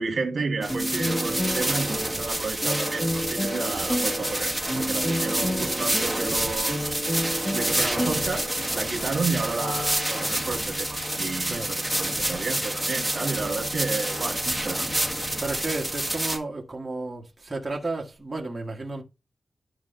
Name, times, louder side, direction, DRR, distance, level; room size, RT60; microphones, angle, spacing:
voice 1, 0.0-6.9 7.5-8.5 8.7-15.0, right 4 dB, 65° right, 1.8 m, -31 dB
sound 1, 0.6-16.4, right 1 dB, ahead, 1.5 m, -28 dB
sound 2, 0.7-8.8, equal, 20° left, 2.1 m, -31 dB
Wind instrument woodwind instrument, 9.5-15.9, left 3 dB, 65° left, 1.2 m, -41 dB
voice 2, 15.4-19.0, right 2 dB, 25° right, 1.5 m, -32 dB
12.0 x 4.5 x 2.6 m
wide cardioid pair, 145°, 0 cm